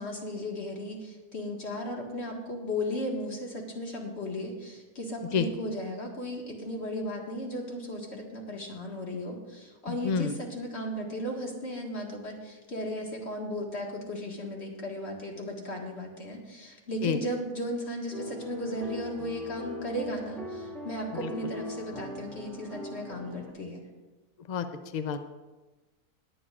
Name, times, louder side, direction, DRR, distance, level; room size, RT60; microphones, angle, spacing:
voice 1, 0.0-23.8, equal, 45° left, 0 dB, 2.0 m, -35 dB
voice 2, 9.9-10.4 17.0-17.2 21.2-21.3 24.5-24.7 24.9-25.2, left 6 dB, 70° left, 8 dB, 0.4 m, -28 dB
sound 1, 18.1-23.5, left 2 dB, ahead, 1.7 m, -41 dB
21.0 x 9.2 x 2.5 m, 1.2 s
omnidirectional pair, 1.6 m